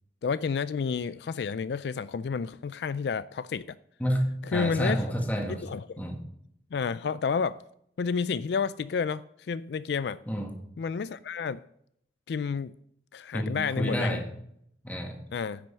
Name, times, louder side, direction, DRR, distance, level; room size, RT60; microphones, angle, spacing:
voice 1, 0.2-3.6 4.5-5.0 5.5-6.0 6.7-7.6 8.0-10.2 10.8-11.6 12.3-12.7 13.1-14.2 15.3-15.6, left 5 dB, 70° left, 0.3 m, -30 dB
voice 2, 4.0-5.6 6.0-6.2 10.3-10.5 13.3-14.2 14.8-15.2, equal, 10° left, 1.7 m, -29 dB
9.9 x 6.3 x 7.4 m
head